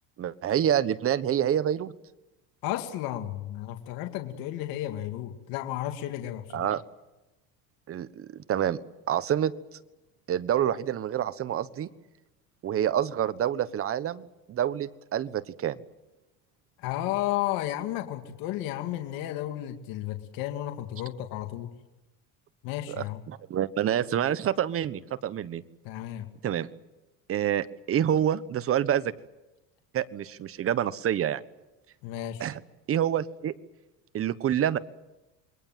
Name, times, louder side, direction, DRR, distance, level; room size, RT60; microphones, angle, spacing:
voice 1, 0.2-1.9 6.5-6.8 7.9-8.8 9.1-9.5 10.3-11.9 12.6-15.8 22.9-25.6 26.4-26.7 27.3-29.1 29.9-31.4 32.4-32.6 32.9-33.5 34.1-34.8, right 10 dB, 35° right, 14 dB, 1.3 m, -27 dB
voice 2, 2.6-6.7 16.8-21.7 22.6-23.2 25.8-26.3 32.0-32.5, left 13 dB, 70° left, 5 dB, 2.5 m, -33 dB
28.0 x 22.0 x 7.6 m, 1.0 s
cardioid pair, 130°, 37 cm